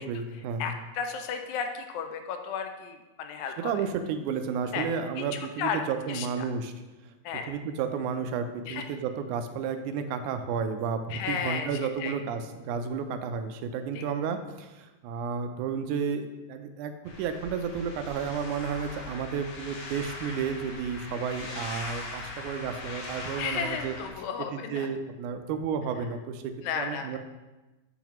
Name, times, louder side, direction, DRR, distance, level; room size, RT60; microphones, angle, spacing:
voice 1, 0.0-0.7 3.6-6.7 7.5-23.9 24.5-27.2, right 6 dB, 90° right, 8 dB, 2.0 m, -32 dB
voice 2, 0.6-3.8 4.7-4.9 5.2-5.8 6.1-6.3 7.3-7.6 8.7-8.8 11.1-11.7 12.0-12.1 14.0-14.1 23.4-24.9 26.6-27.2, left 7 dB, 85° left, 6 dB, 1.9 m, -33 dB
sound 1, 17.0-24.1, left 2 dB, 65° left, 1.5 m, -40 dB
7.0 x 6.0 x 2.9 m, 1.1 s
omnidirectional pair, 3.4 m